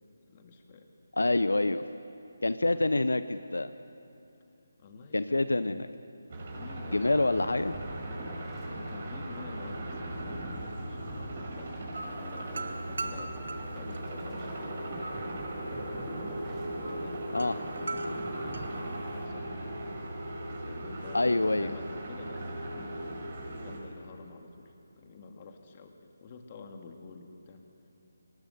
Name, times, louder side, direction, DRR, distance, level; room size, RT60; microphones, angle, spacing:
voice 1, 0.3-0.9 2.7-2.9 4.8-5.9 6.3-7.1 8.7-16.4 16.8-19.7 20.4-27.6, left 4 dB, 35° left, 4 dB, 2.0 m, -49 dB
voice 2, 1.1-1.8 2.4-3.7 5.1-5.9 6.9-7.7 17.3-17.6 21.1-21.7, left 2 dB, 80° left, 12 dB, 0.6 m, -26 dB
sound 1, 6.3-23.8, right 1 dB, 40° right, 5.4 m, -38 dB
sound 2, 6.9-19.4, right 1 dB, 10° right, 3.1 m, -46 dB
sound 3, 11.9-19.2, right 3 dB, 70° right, 1.6 m, -42 dB
23.5 x 19.5 x 6.7 m, 2.8 s
figure-of-eight pair, 155°, 0 cm